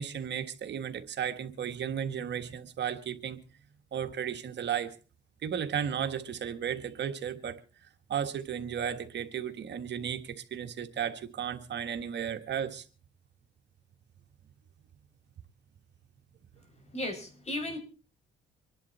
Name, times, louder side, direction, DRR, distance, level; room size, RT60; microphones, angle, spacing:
voice 1, 0.0-3.4 3.9-4.9 5.4-7.6 8.1-12.8, right 8 dB, 60° right, 1.6 m, -34 dB
voice 2, 16.9-17.8, left 1 dB, 35° left, 6.0 m, -35 dB
25.5 x 11.0 x 4.2 m
cardioid pair, 90°, 20 cm